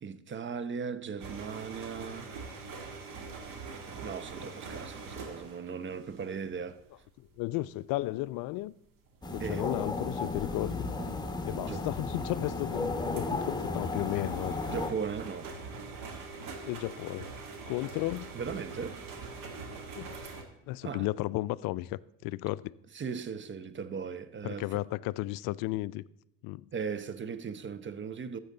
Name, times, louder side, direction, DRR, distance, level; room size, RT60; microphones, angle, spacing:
voice 1, 0.0-2.3 4.0-6.8 9.4-9.7 11.6-11.8 14.7-15.5 18.3-19.0 20.8-21.1 22.9-24.8 26.7-28.4, right 6 dB, 30° right, 0.8 m, -38 dB
sound 1, 1.2-6.8 7.3-7.5 8.2-8.4 9.1-9.3 11.1-11.2 11.8-11.9 12.2-12.3 13.2-20.4, right 4 dB, 55° right, 2.0 m, -44 dB
voice 2, 7.4-8.7 9.3-10.9 11.5-14.6 16.6-17.3 17.7-18.3 20.0-20.1 20.7-22.7 24.4-26.0 26.4-26.7, left 18 dB, 60° left, 0.4 m, -34 dB
sound 2, 9.2-14.9, left 3 dB, 10° left, 1.4 m, -34 dB
13.0 x 7.8 x 3.9 m
hypercardioid pair, 70°, 38 cm